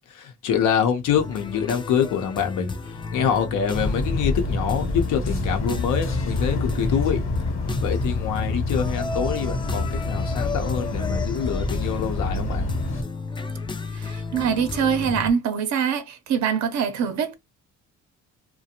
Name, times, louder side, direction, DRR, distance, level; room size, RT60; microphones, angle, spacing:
voice 1, 0.0-7.2 7.8-12.7, left 8 dB, 90° left, 0.7 m, -26 dB
sound 1, 1.2-15.3, left 3 dB, 15° left, 0.4 m, -34 dB
sound 2, 3.7-13.0, left 2 dB, 45° left, 0.9 m, -27 dB
voice 2, 13.9-17.3, right 7 dB, 65° right, 0.7 m, -24 dB
2.4 x 2.1 x 2.8 m
cardioid pair, 90°, 30 cm